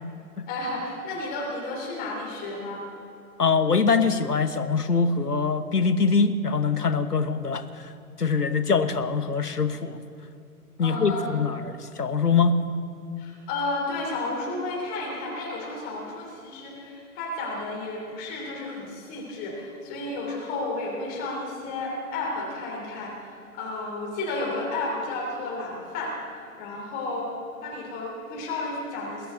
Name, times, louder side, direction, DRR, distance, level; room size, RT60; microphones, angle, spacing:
voice 1, 0.5-2.8 10.8-11.3 13.2-26.1 26.6-27.3 27.6-29.3, left 2 dB, 20° left, -2 dB, 3.0 m, -32 dB
voice 2, 3.4-7.9 8.2-10.0 10.8-12.5, left 5 dB, 80° left, 10 dB, 1.2 m, -23 dB
21.0 x 7.0 x 8.9 m, 2.6 s
figure-of-eight pair, 125°, 46 cm